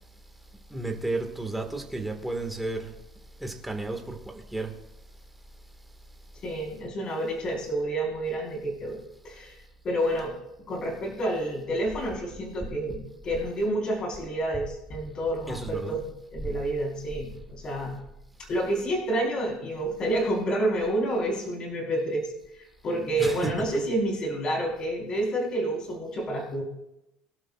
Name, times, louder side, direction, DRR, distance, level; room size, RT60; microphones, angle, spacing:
voice 1, 0.7-2.9 3.4-4.7 15.5-16.0 16.4-16.5 23.2-23.8, right 2 dB, 5° right, 1.8 m, -32 dB
voice 2, 6.4-9.0 9.2-9.6 9.8-10.3 10.7-18.0 18.5-22.3 22.8-26.6, right 1 dB, 30° left, 4.4 m, -29 dB
23.5 x 12.0 x 2.5 m
cardioid pair, 155°, 3 cm